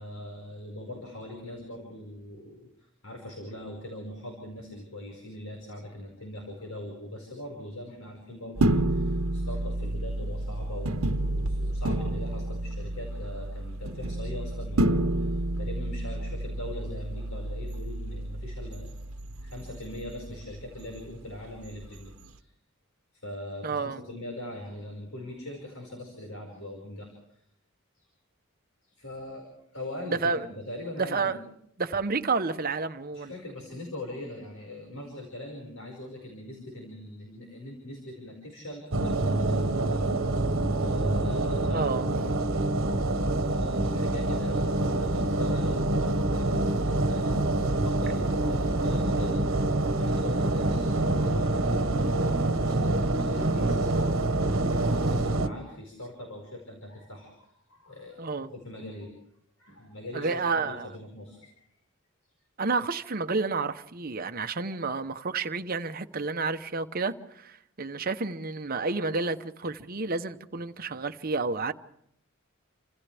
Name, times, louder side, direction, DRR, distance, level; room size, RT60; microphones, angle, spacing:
voice 1, 0.0-19.0 19.4-22.5 23.1-27.4 28.0-28.1 28.8-29.5 29.7-31.4 33.1-40.1 40.7-42.6 43.3-54.2 54.7-58.2 58.5-59.1 59.6-61.8, left 1 dB, 85° left, 5.5 m, -41 dB
sound 1, 8.6-22.2, right 1 dB, 80° right, 1.0 m, -30 dB
voice 2, 23.6-24.0 30.1-30.5 31.0-31.4 31.8-33.3 41.7-42.0 58.2-58.5 60.1-60.9 62.6-71.7, right 4 dB, 45° right, 0.9 m, -30 dB
sound 2, 38.9-55.5, right 2 dB, 65° right, 1.3 m, -26 dB
29.5 x 26.5 x 3.5 m
head